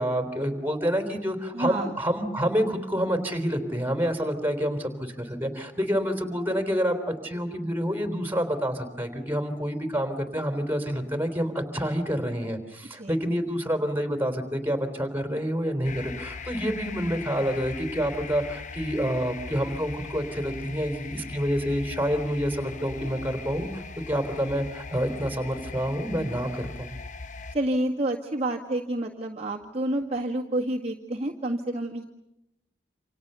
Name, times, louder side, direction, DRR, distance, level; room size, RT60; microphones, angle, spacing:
voice 1, 0.0-26.9, equal, 10° right, 6 dB, 3.7 m, -28 dB
voice 2, 1.5-1.9 13.0-13.1 27.5-32.0, right 1 dB, 35° right, -1 dB, 1.8 m, -29 dB
sound 1, 15.8-27.6, left 4 dB, 45° left, 1.1 m, -40 dB
28.5 x 27.0 x 6.9 m, 0.86 s
head